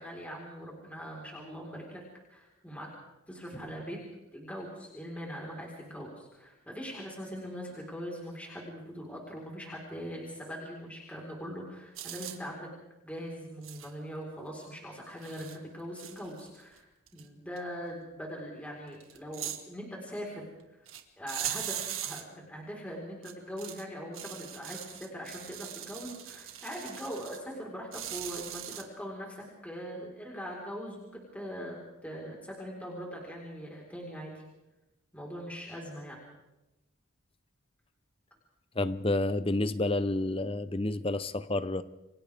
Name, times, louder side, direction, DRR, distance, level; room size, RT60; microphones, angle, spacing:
voice 1, 0.0-2.0 2.3-2.9 3.3-4.0 4.3-12.7 13.0-16.9 17.1-20.4 21.2-34.4 35.1-36.2, equal, 5° left, -2 dB, 4.6 m, -41 dB
sound 1, 12.0-12.4 13.6-13.9 14.6-14.7 15.2-15.6 16.0-16.8 17.1-17.2 17.6-17.7 19.0-19.6 20.9-21.0 21.3-22.2 23.2-23.8 24.1-27.4 27.9-28.8, right 11 dB, 75° right, 2.0 m, -40 dB
voice 2, 38.7-41.8, left 2 dB, 25° left, 13 dB, 0.8 m, -29 dB
30.0 x 24.0 x 3.6 m, 0.98 s
head